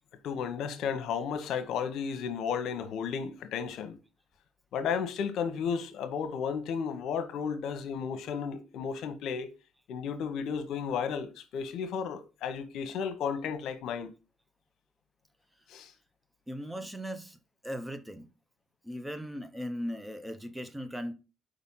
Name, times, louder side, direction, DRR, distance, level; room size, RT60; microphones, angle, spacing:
voice 1, 0.2-4.0 4.7-9.5 9.9-14.1 15.7-15.9, left 6 dB, 70° left, 1.0 m, -33 dB
voice 2, 16.5-17.4 17.6-18.3 18.8-21.1, equal, 10° right, 0.8 m, -38 dB
5.0 x 4.1 x 5.5 m
supercardioid pair, 85°, 0 cm